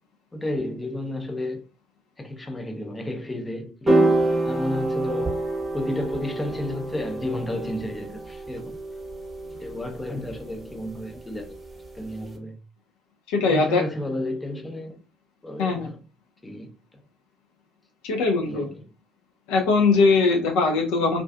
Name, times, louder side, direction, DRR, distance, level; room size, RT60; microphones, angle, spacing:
voice 1, 0.3-1.6 2.2-5.4 5.7-8.8 9.6-11.6 12.0-12.6 13.5-15.0 15.4-16.0 16.4-16.7 18.4-18.7, left 1 dB, 15° left, 0.6 m, -32 dB
sound 1, 3.9-12.3, right 2 dB, 20° right, 0.9 m, -27 dB
voice 2, 13.3-13.8 15.6-15.9 18.0-18.7 19.5-21.2, left 4 dB, 65° left, 0.4 m, -21 dB
2.4 x 2.3 x 2.5 m
figure-of-eight pair, 50°, 0 cm